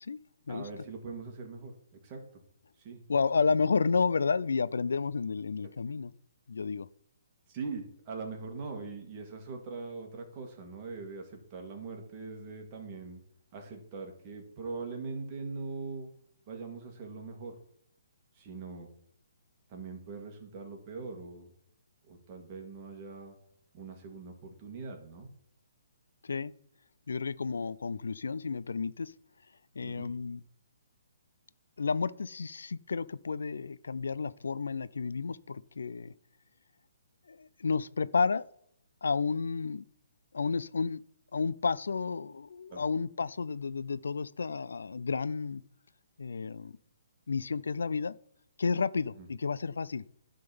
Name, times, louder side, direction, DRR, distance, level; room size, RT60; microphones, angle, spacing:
voice 1, 0.5-2.4 2.8-3.0 7.5-13.2 13.5-16.1 16.5-17.6 18.3-18.9 19.7-21.5 22.1-23.4 23.7-25.3 29.8-30.1 42.7-42.8 49.2-49.3, right 4 dB, 25° right, 2 dB, 1.7 m, -42 dB
voice 2, 3.1-6.1 6.5-6.9 26.2-26.5 27.1-29.1 29.8-30.4 31.8-36.1 37.3-38.4 39.0-39.8 40.3-41.0 41.3-45.6 46.2-46.8 47.3-48.1 48.6-50.1, left 5 dB, 85° left, 18 dB, 0.4 m, -31 dB
11.0 x 3.8 x 6.9 m, 0.72 s
hypercardioid pair, 165°, 0 cm